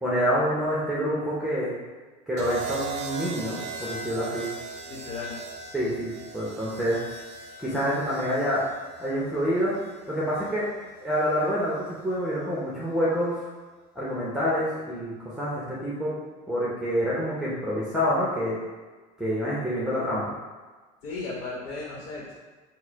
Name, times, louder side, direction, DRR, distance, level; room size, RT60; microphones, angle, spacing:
voice 1, 0.0-1.7 2.3-4.5 5.7-7.0 7.6-8.6 9.0-9.7 10.1-10.7 11.0-13.4 14.0-16.1 16.5-18.6 19.2-20.3, equal, 5° right, -7 dB, 0.7 m, -27 dB
sound 1, 2.4-10.5 11.7-12.1, right 4 dB, 45° right, 0.6 m, -39 dB
voice 2, 4.9-5.4 21.0-22.4, left 3 dB, 75° left, -5 dB, 1.1 m, -35 dB
4.6 x 2.1 x 4.6 m, 1.3 s
cardioid pair, 155°, 16 cm